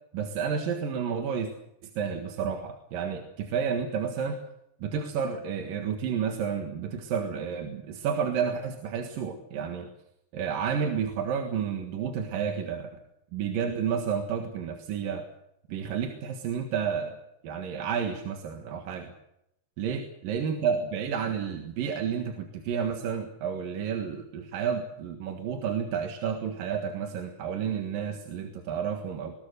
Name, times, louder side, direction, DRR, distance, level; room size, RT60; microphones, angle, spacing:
voice 1, 0.1-1.5 2.0-4.4 4.8-9.9 10.3-13.0 13.3-15.3 15.7-19.1 19.8-29.4, right 7 dB, 60° right, 5 dB, 3.1 m, -31 dB
22.0 x 20.5 x 6.6 m, 0.81 s
omnidirectional pair, 4.7 m